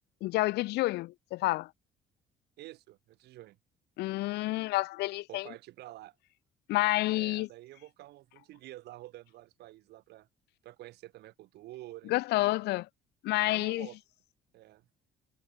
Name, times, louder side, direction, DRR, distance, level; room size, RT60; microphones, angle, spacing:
voice 1, 0.2-1.7 4.0-5.5 6.7-7.5 12.1-12.9 13.2-13.9, left 19 dB, 80° left, 0.6 m, -29 dB
voice 2, 2.6-3.6 5.3-6.1 7.1-10.3 10.6-12.1 12.5-12.6 13.4-14.0 14.5-14.9, right 16 dB, 75° right, 2.3 m, -49 dB
cardioid pair, 110°, 17 cm